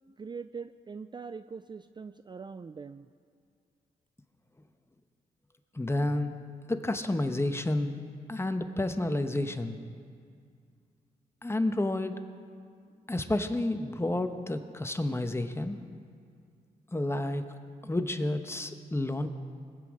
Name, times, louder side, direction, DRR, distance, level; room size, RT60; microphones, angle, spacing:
voice 1, 0.2-3.1, right 5 dB, 30° right, 12 dB, 0.4 m, -42 dB
voice 2, 5.7-6.3 6.7-7.9 8.3-9.8 11.4-12.1 13.1-15.8 16.9-17.4 17.8-19.3, left 1 dB, 15° left, 8 dB, 1.0 m, -30 dB
20.0 x 8.3 x 4.9 m, 2.2 s
cardioid pair, 60°, 16 cm